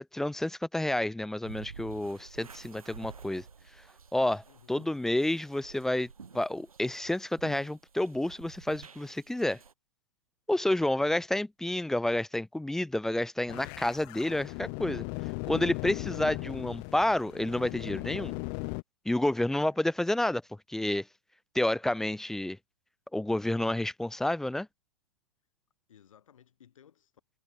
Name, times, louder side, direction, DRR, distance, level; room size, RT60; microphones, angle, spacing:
voice 1, 0.1-3.4 4.1-6.1 6.3-9.6 10.5-15.0 15.5-18.3 19.1-20.4 20.7-21.1 21.5-22.6 23.1-24.7, left 1 dB, ahead, 0.3 m, -29 dB
sound 1, 1.4-9.7, right 5 dB, 85° right, 1.6 m, -50 dB
sound 2, 13.5-18.8, left 40 dB or more, 40° left, 1.0 m, -37 dB
voice 2, 25.9-27.1, left 9 dB, 70° left, 6.9 m, -59 dB
figure-of-eight pair, 110°, 18 cm